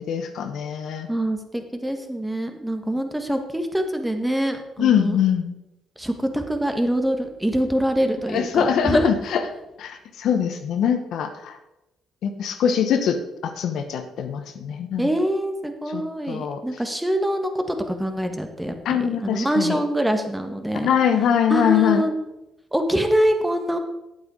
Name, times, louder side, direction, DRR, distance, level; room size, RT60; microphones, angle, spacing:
voice 1, 0.0-1.1 4.8-5.5 8.3-9.5 9.8-11.6 12.2-15.1 15.9-16.6 18.8-19.8 20.8-22.0, left 8 dB, 65° left, 7 dB, 0.9 m, -23 dB
voice 2, 1.1-5.2 6.0-9.1 15.0-20.9 21.5-22.1 22.7-23.8, equal, 10° right, 6 dB, 1.6 m, -24 dB
8.7 x 8.4 x 4.9 m, 0.93 s
hypercardioid pair, 50°, 0 cm